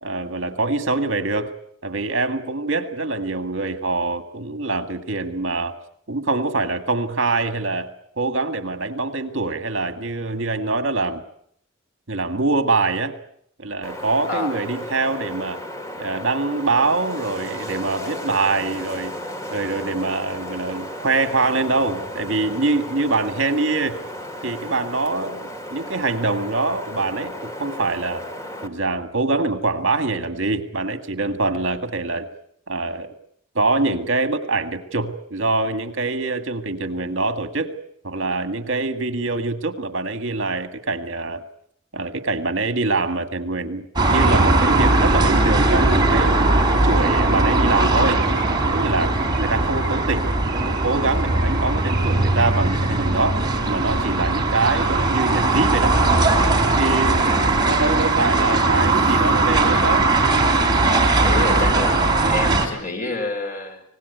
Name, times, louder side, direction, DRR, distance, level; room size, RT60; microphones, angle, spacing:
voice 1, 0.0-1.5 1.8-5.8 6.1-7.9 8.2-11.2 12.1-13.2 13.6-15.6 16.0-19.1 19.5-24.0 24.4-28.2 28.6-32.3 32.7-33.1 33.6-37.7 38.0-41.4 41.9-46.4 46.7-48.2 48.7-50.3 50.6-56.0 56.8-57.2 57.6-60.1, right 3 dB, 70° right, 8 dB, 1.9 m, -24 dB
Wind, 13.8-28.7, equal, 15° left, 2.1 m, -34 dB
sound 1, 44.0-62.7, right 2 dB, 20° right, 3.7 m, -19 dB
voice 2, 57.1-57.9 61.0-63.8, left 2 dB, 45° left, 4 dB, 4.8 m, -29 dB
25.5 x 19.0 x 8.1 m, 0.68 s
head